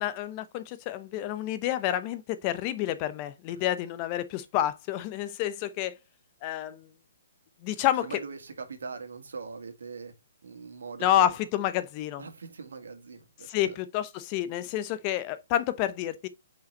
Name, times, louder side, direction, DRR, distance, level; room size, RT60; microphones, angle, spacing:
voice 1, 0.0-6.0 6.4-6.9 7.6-8.1 11.0-12.2 13.4-16.3, left 12 dB, 30° left, 0.7 m, -29 dB
voice 2, 8.0-10.1 10.4-11.4 12.2-13.8, right 4 dB, 85° right, 2.0 m, -41 dB
5.6 x 5.2 x 4.4 m
hypercardioid pair, 155°, 0 cm